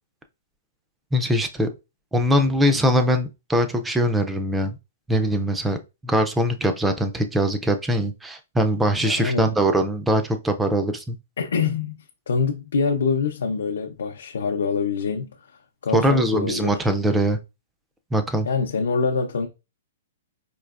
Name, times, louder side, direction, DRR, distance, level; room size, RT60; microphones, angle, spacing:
voice 1, 1.1-1.7 2.1-4.8 5.1-5.8 6.0-11.2 15.9-17.4 18.1-18.5, equal, 5° right, 0.3 m, -22 dB
voice 2, 9.0-9.5 11.4-12.0 12.3-15.4 15.8-16.8 18.4-19.5, left 5 dB, 80° left, 0.6 m, -25 dB
4.4 x 2.8 x 2.4 m
hypercardioid pair, 175°, 0 cm